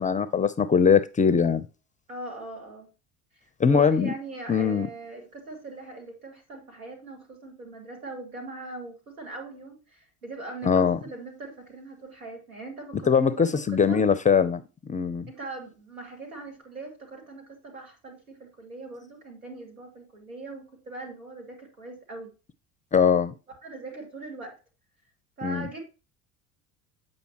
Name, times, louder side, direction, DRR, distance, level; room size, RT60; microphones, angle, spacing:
voice 1, 0.0-1.6 3.6-4.1 4.5-4.9 10.7-11.0 13.1-15.3 22.9-23.3 25.4-25.7, left 6 dB, 20° left, 0.5 m, -21 dB
voice 2, 2.1-2.9 3.4-14.0 15.3-22.3 23.6-24.5 25.4-25.8, right 2 dB, 85° right, 2.5 m, -41 dB
8.1 x 5.2 x 2.9 m
hypercardioid pair, 70°, 42 cm